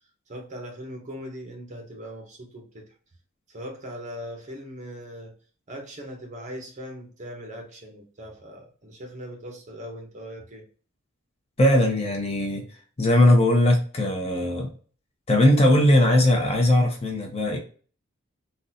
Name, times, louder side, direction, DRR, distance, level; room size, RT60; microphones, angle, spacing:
voice 1, 0.3-2.9 3.5-5.3 5.7-10.6, equal, 35° right, 2 dB, 0.9 m, -40 dB
voice 2, 11.6-12.6 13.0-14.7 15.3-17.6, left 1 dB, 30° left, 2 dB, 0.8 m, -19 dB
3.8 x 2.3 x 2.7 m, 0.40 s
head